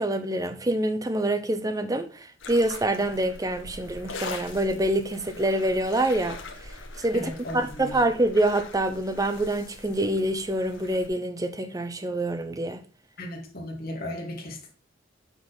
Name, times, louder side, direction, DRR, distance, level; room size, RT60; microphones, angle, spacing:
voice 1, 0.0-12.8, right 1 dB, 15° right, 0.7 m, -26 dB
sound 1, 2.4-11.1, left 3 dB, 70° left, 1.4 m, -42 dB
voice 2, 7.1-8.0 13.2-14.7, left 1 dB, 50° left, 2.0 m, -36 dB
7.8 x 4.0 x 5.4 m
head